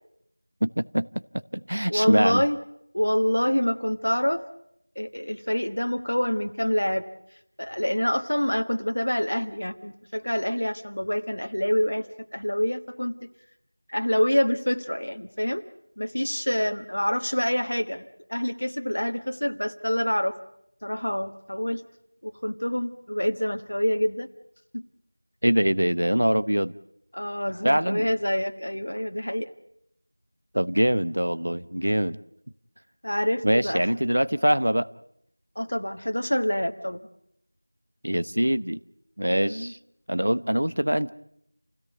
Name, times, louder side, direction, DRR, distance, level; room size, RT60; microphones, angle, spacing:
voice 1, 0.6-1.1 1.5-2.4 25.4-26.7 27.6-28.1 30.5-32.2 33.4-34.9 38.0-38.8 39.2-39.8 40.1-41.1, equal, 65° right, 16 dB, 0.9 m, -23 dB
voice 2, 1.9-2.6 2.9-4.4 5.0-7.0 7.6-12.1 12.3-13.3 13.9-15.6 16.0-20.3 20.8-21.8 22.2-24.3 24.7-24.8 27.1-29.5 33.0-33.8 35.5-37.0 39.3-39.7, equal, 65° left, 7 dB, 1.4 m, -26 dB
28.5 x 17.0 x 9.1 m, 0.78 s
figure-of-eight pair, 180°, 0 cm